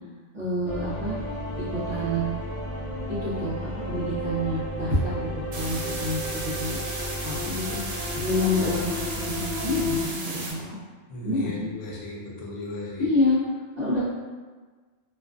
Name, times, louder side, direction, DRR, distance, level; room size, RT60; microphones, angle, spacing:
voice 1, 0.3-1.2 1.7-2.2 3.1-3.6 3.9-6.8 7.2-7.8 8.2-10.8 11.2-11.5 13.0-13.4 13.8-14.1, left 1 dB, 45° right, -9 dB, 0.7 m, -27 dB
sound 1, 0.6-10.1, left 1 dB, 55° left, 0.8 m, -32 dB
sound 2, 5.5-10.5, right 2 dB, 80° right, 0.9 m, -35 dB
voice 2, 11.1-13.1, left 2 dB, 85° left, -3 dB, 0.9 m, -36 dB
2.4 x 2.3 x 2.4 m, 1.4 s
omnidirectional pair, 1.2 m